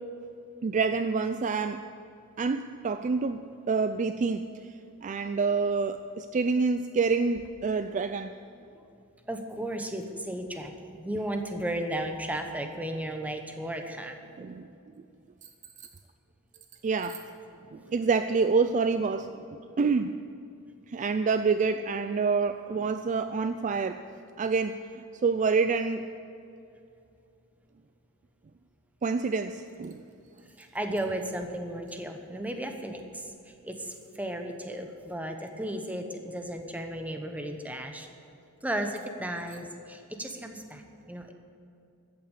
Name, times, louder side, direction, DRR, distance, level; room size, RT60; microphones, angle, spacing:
voice 1, 0.6-1.8 2.4-3.4 3.7-4.5 5.0-8.3 14.4-14.7 16.8-17.2 17.7-20.2 20.9-24.0 24.4-26.1 29.0-30.0, right 4 dB, 35° right, 9 dB, 0.4 m, -27 dB
voice 2, 9.3-14.2 30.6-33.2 33.6-38.1 38.6-40.8 41.1-41.3, right 1 dB, 5° right, 5 dB, 1.0 m, -34 dB
13.5 x 8.9 x 8.2 m, 2.6 s
head